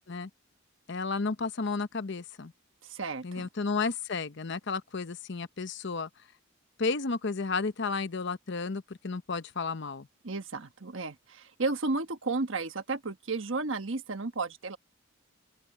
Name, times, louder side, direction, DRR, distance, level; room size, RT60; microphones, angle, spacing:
voice 1, 0.9-2.5 3.2-6.1 6.8-10.1, left 4 dB, 60° left, 0.8 m, -32 dB
voice 2, 2.8-3.5 10.2-14.8, right 3 dB, 70° right, 1.3 m, -33 dB
open air
head